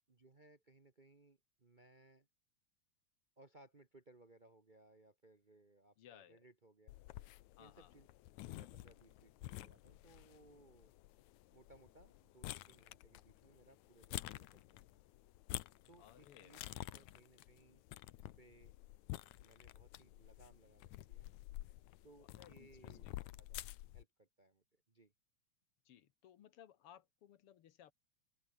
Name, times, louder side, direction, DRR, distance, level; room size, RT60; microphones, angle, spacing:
voice 1, 0.1-2.3 3.4-6.9 7.6-8.1 8.4-10.9 11.5-15.0 15.9-17.8 18.2-18.7 19.4-21.3 22.0-25.1, right 2 dB, 55° right, 0.5 m, -65 dB
voice 2, 6.0-6.5 7.6-8.0 16.0-16.6 16.8-17.0 22.2-23.2 25.9-27.9, left 10 dB, 60° left, 1.8 m, -61 dB
sound 1, 6.9-24.0, left 16 dB, 80° left, 2.2 m, -51 dB
open air
omnidirectional pair, 3.3 m